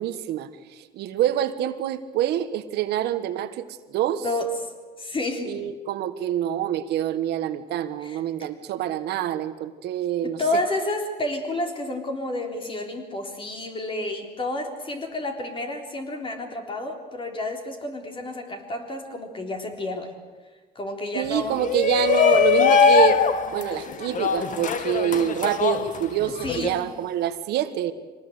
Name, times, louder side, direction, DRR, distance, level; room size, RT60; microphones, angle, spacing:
voice 1, 0.0-4.2 5.4-10.6 21.1-23.2 23.5-27.9, right 11 dB, 80° right, 10 dB, 1.5 m, -26 dB
voice 2, 4.2-4.5 5.0-5.5 8.0-8.5 10.2-20.1 20.8-21.6 26.4-26.8, left 1 dB, 30° left, 3 dB, 3.7 m, -30 dB
Shout, 21.6-26.7, left 7 dB, 50° left, 1.6 m, -21 dB
24.5 x 19.0 x 8.2 m, 1.3 s
cardioid pair, 110°, 17 cm